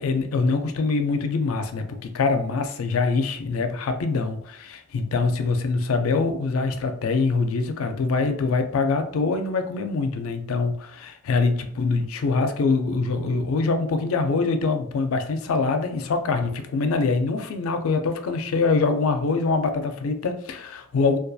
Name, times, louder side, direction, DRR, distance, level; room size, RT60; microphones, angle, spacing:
voice 1, 0.0-21.2, left 4 dB, 85° left, 8 dB, 0.4 m, -24 dB
2.6 x 2.3 x 2.3 m, 0.66 s
head